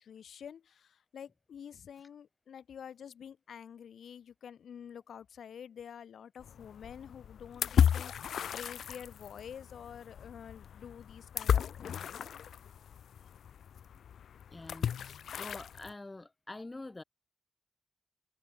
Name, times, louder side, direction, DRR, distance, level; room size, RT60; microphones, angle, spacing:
voice 1, 0.0-12.4, left 8 dB, 70° left, 2.2 m, -48 dB
sound 1, 6.4-15.9, left 8 dB, 90° left, 1.3 m, -34 dB
voice 2, 14.5-17.0, left 2 dB, 15° left, 3.6 m, -46 dB
wide cardioid pair, 180°, 0 cm